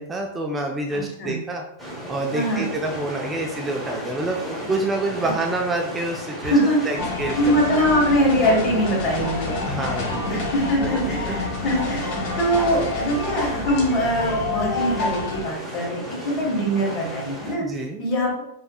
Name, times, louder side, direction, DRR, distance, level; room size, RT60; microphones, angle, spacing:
voice 1, 0.0-1.6 2.1-7.5 9.6-10.5 10.8-11.4 17.6-18.0, right 2 dB, 15° right, 1 dB, 0.3 m, -28 dB
voice 2, 0.9-1.4 2.3-2.7 6.4-6.8 7.4-9.6 10.3-17.6 18.0-18.4, equal, 40° left, -2 dB, 1.4 m, -22 dB
sound 1, 1.8-17.6, equal, ahead, 1.2 m, -35 dB
sound 2, 7.0-15.4, left 3 dB, 60° left, 1.0 m, -28 dB
3.4 x 2.8 x 2.3 m, 0.80 s
hypercardioid pair, 125°, 0 cm